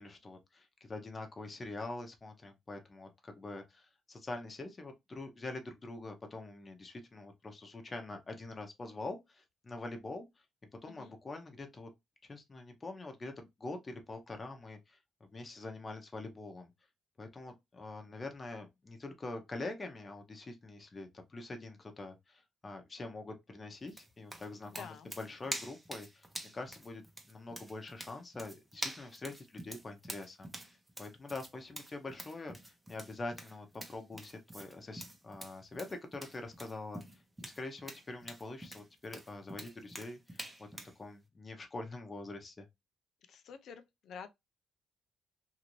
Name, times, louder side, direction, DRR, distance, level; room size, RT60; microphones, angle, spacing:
voice 1, 0.0-10.3 10.8-11.9 12.3-16.7 17.2-26.3 26.5-37.0 37.4-42.7, left 2 dB, 30° left, 0.9 m, -45 dB
sound 1, 23.9-41.0, right 1 dB, 15° right, 0.8 m, -46 dB
voice 2, 24.7-25.1 43.3-44.3, left 7 dB, 70° left, 0.5 m, -49 dB
2.8 x 2.6 x 3.0 m
cardioid pair, 90°, 0 cm